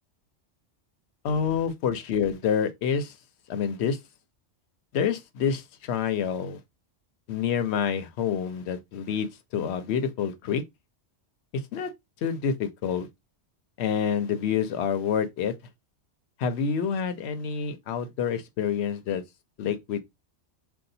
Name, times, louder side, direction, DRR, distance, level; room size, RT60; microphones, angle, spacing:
voice 1, 1.2-3.1 3.5-4.0 4.9-6.6 7.3-10.6 11.7-11.9 12.2-13.1 13.8-15.5 16.4-19.2 19.6-20.0, left 7 dB, 70° left, 0.8 m, -27 dB
2.7 x 2.3 x 4.0 m
omnidirectional pair, 1.2 m